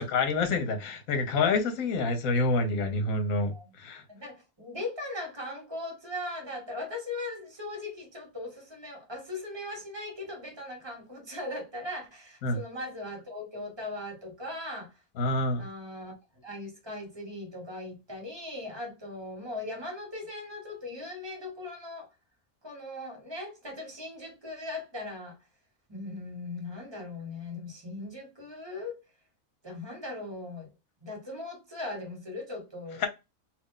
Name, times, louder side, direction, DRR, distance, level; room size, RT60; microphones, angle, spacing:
voice 1, 0.0-3.5 3.8-4.0 12.4-12.6 15.2-15.7 33.0-33.1, left 3 dB, 75° left, 1.2 m, -27 dB
voice 2, 4.1-14.9 15.6-16.2 16.4-22.1 22.6-25.4 25.9-29.0 29.6-30.7 31.0-33.1, left 2 dB, 20° right, 1.2 m, -39 dB
2.6 x 2.5 x 3.6 m
omnidirectional pair, 1.5 m